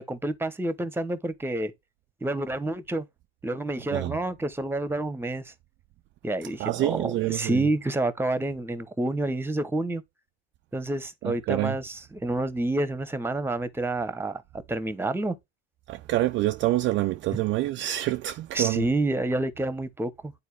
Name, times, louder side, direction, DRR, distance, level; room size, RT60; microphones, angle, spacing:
voice 1, 0.0-1.7 2.2-3.1 3.4-5.5 6.2-10.0 10.7-14.4 14.7-15.3 17.3-17.4 18.5-20.3, right 2 dB, 5° right, 1.0 m, -28 dB
voice 2, 6.6-7.6 11.2-11.7 15.9-18.8, right 16 dB, 40° right, 0.4 m, -26 dB
9.4 x 4.1 x 3.4 m
hypercardioid pair, 90°, 32 cm